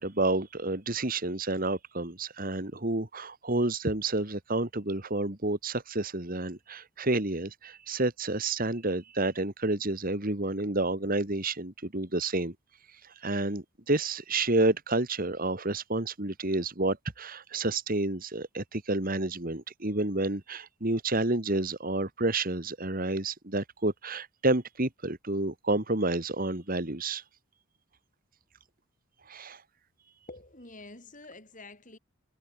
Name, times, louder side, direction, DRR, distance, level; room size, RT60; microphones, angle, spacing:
voice 1, 0.0-12.5 13.2-27.2 29.3-29.6, right 2 dB, 40° right, 2.1 m, -30 dB
voice 2, 30.3-32.0, left 2 dB, 35° left, 5.9 m, -47 dB
head